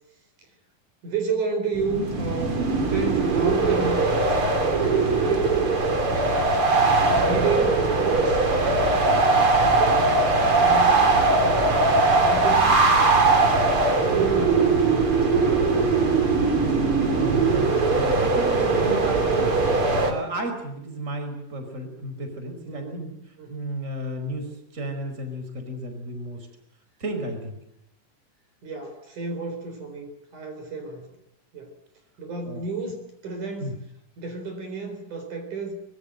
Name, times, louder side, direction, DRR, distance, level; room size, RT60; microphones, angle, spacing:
voice 1, 1.0-4.4 5.2-5.8 6.1-6.7 7.1-8.5 9.6-10.2 10.6-13.3 14.1-14.9 22.7-23.7 28.6-31.1 31.5-31.8 32.2-33.8 34.2-35.7, right 3 dB, 60° right, 6 dB, 5.5 m, -32 dB
sound 1, 1.7-20.1, right 3 dB, 40° right, 4.1 m, -20 dB
voice 2, 16.7-19.6 20.0-23.1 23.5-26.5 27.0-27.6 32.5-32.6 33.6-33.7, right 1 dB, 20° right, 6 dB, 5.2 m, -33 dB
24.0 x 22.0 x 7.9 m, 0.80 s
omnidirectional pair, 4.0 m